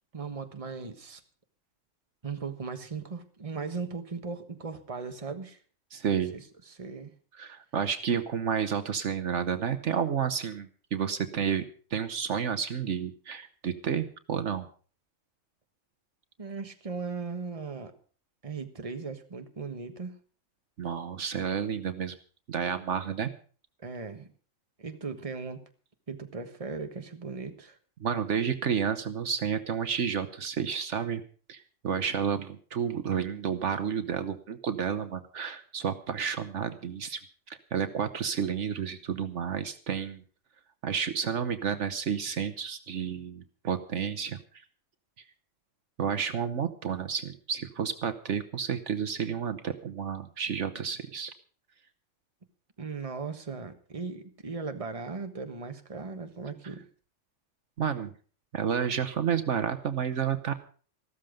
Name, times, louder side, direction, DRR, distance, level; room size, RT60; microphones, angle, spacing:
voice 1, 0.1-1.2 2.2-5.6 6.3-7.1 16.4-17.9 18.4-20.1 23.8-24.3 24.8-25.6 26.1-27.8 52.8-56.8, right 4 dB, 30° right, 7 dB, 1.4 m, -38 dB
voice 2, 5.9-6.3 7.4-14.7 20.8-22.2 22.5-23.3 28.0-31.2 31.5-37.2 37.5-40.2 40.8-44.6 46.0-51.3 57.8-58.1 58.5-60.5, right 7 dB, 70° right, 10 dB, 1.3 m, -31 dB
14.5 x 13.5 x 5.1 m, 0.41 s
omnidirectional pair, 1.3 m